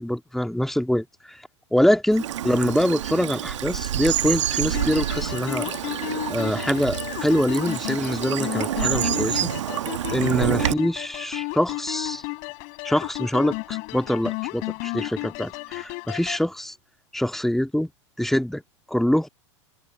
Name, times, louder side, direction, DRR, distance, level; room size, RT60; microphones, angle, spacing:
voice 1, 0.0-1.4 1.7-5.7 6.3-9.5 10.1-12.2 12.8-16.7 17.1-17.9 18.2-18.6 18.9-19.3, left 1 dB, ahead, 2.3 m, -24 dB
Bird vocalization bird call bird song / Stream, 2.1-10.7, right 11 dB, 75° right, 1.2 m, -27 dB
sound 1, 2.8-8.6 8.8-9.1, right 7 dB, 30° right, 5.7 m, -47 dB
sound 2, 4.7-16.5, left 31 dB, 50° left, 7.6 m, -33 dB
hypercardioid pair, 100°, 16 cm